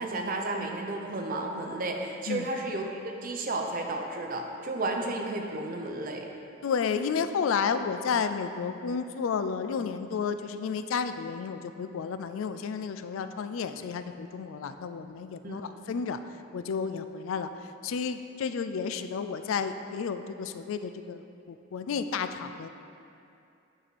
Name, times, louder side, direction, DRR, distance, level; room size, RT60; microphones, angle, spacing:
voice 1, 0.0-6.3 15.4-15.6, right 2 dB, 45° right, 2 dB, 0.7 m, -32 dB
voice 2, 6.6-16.2 16.5-17.5 17.8-22.7, left 6 dB, 90° left, 10 dB, 0.4 m, -32 dB
9.1 x 4.6 x 4.1 m, 2.6 s
head